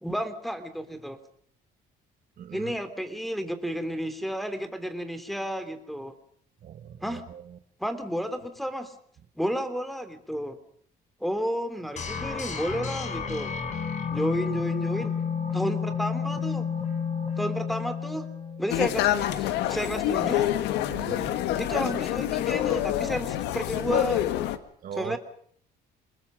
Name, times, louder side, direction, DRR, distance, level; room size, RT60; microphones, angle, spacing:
voice 1, 0.0-1.2 2.5-6.1 7.0-7.2 7.8-8.9 9.4-10.6 11.2-13.5 14.1-15.1 15.5-16.7 17.4-18.2 18.6-20.5 21.6-24.2 24.9-25.2, equal, ahead, 3.3 m, -32 dB
voice 2, 2.4-2.8 6.6-7.6 20.9-21.4 24.8-25.2, right 9 dB, 55° right, 2.0 m, -40 dB
sound 1, 12.0-18.9, left 6 dB, 45° left, 5.6 m, -31 dB
sound 2, 18.7-24.6, left 12 dB, 90° left, 1.7 m, -27 dB
28.5 x 20.5 x 5.3 m
cardioid pair, 110°, 17 cm